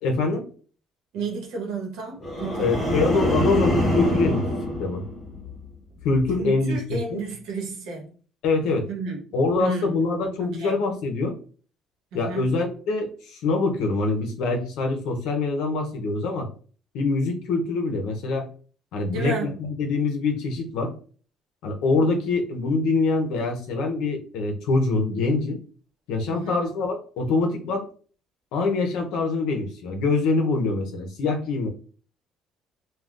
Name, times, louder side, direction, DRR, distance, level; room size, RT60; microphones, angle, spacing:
voice 1, 0.0-0.4 2.6-4.5 4.8-5.0 6.0-6.8 7.1-7.2 8.4-8.9 9.3-11.3 12.1-16.5 16.9-18.5 18.9-20.9 21.6-25.6 26.1-27.9 28.5-31.7, left 3 dB, 70° left, 0.7 m, -24 dB
voice 2, 1.1-3.1 6.4-8.1 8.9-9.2 9.6-10.0 10.4-10.8 12.1-12.6 19.0-19.5 26.3-26.6, right 4 dB, 75° right, 1.1 m, -32 dB
sound 1, 2.2-5.6 6.0-6.4, left 1 dB, 10° left, 0.9 m, -25 dB
3.5 x 2.3 x 2.4 m
cardioid pair, 175°, 0 cm